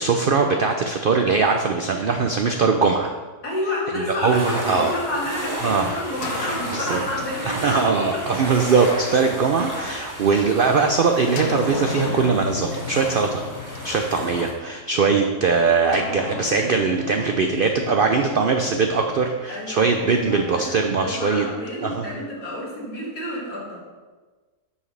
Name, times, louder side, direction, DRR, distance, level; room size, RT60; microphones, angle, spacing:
voice 1, 0.0-3.1 4.2-4.9 5.6-6.0 6.4-6.5 6.9-7.0 7.5-13.5 13.8-21.5 21.8-22.1, right 4 dB, 80° right, 4 dB, 0.4 m, -21 dB
voice 2, 3.4-8.2 9.9-10.0 19.5-23.8, left 1 dB, 90° left, -5 dB, 2.7 m, -30 dB
sound 1, 4.2-14.5, equal, 10° left, 1.6 m, -33 dB
sound 2, 6.2-10.0 11.4-14.9 15.9-20.1, left 5 dB, 55° left, 0.7 m, -35 dB
8.4 x 7.3 x 3.3 m, 1.3 s
omnidirectional pair, 1.6 m